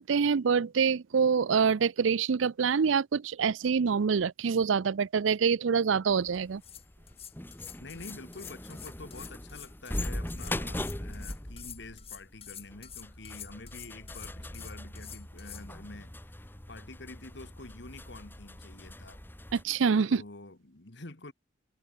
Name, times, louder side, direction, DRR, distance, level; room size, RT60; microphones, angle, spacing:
voice 1, 0.0-6.6 19.5-20.2, right 6 dB, 80° right, 0.5 m, -26 dB
sound 1, 6.1-19.6, left 1 dB, 10° left, 1.4 m, -41 dB
sound 2, 6.3-15.6, left 10 dB, 30° left, 3.1 m, -47 dB
voice 2, 7.8-16.3 16.7-19.2 20.1-21.3, left 2 dB, 60° left, 1.8 m, -47 dB
head